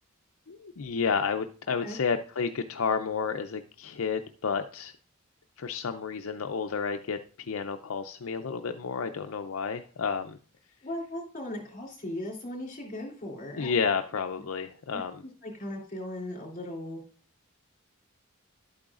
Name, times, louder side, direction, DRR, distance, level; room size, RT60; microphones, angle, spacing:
voice 1, 0.5-4.9 5.6-10.4 13.6-15.2, left 5 dB, 70° left, 7 dB, 0.5 m, -31 dB
voice 2, 10.8-13.7 14.9-17.0, left 1 dB, 40° left, 0 dB, 3.2 m, -38 dB
11.5 x 8.7 x 2.5 m, 0.40 s
head